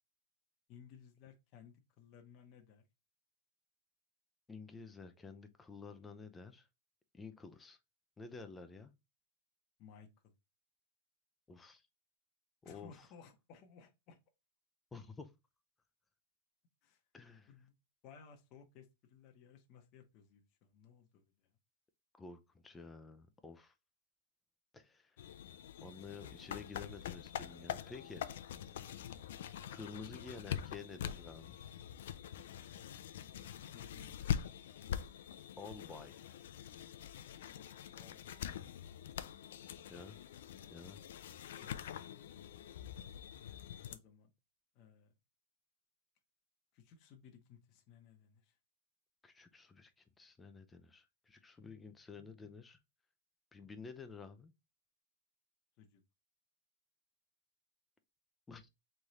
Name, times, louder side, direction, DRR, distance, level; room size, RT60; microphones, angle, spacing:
voice 1, 0.7-2.9 9.8-10.3 12.6-14.2 16.8-17.0 17.5-17.7 18.0-21.3 33.7-34.4 37.9-38.3 41.6-41.7 43.9-44.3 44.7-45.1 46.7-48.6 55.8-56.0, left 6 dB, 35° left, 0.8 m, -59 dB
voice 2, 4.5-6.6 7.1-7.8 8.2-8.9 11.5-11.8 12.6-12.9 14.9-15.3 17.1-17.5 22.2-23.7 24.7-25.1 25.8-28.2 29.7-31.6 35.6-36.2 39.9-40.2 40.7-41.0 49.2-49.9 50.2-52.8 53.5-54.5 58.5-58.7, left 4 dB, 10° left, 0.5 m, -51 dB
sound 1, 25.2-44.0, left 9 dB, 70° left, 0.4 m, -44 dB
3.5 x 3.2 x 4.0 m
supercardioid pair, 165°, 0 cm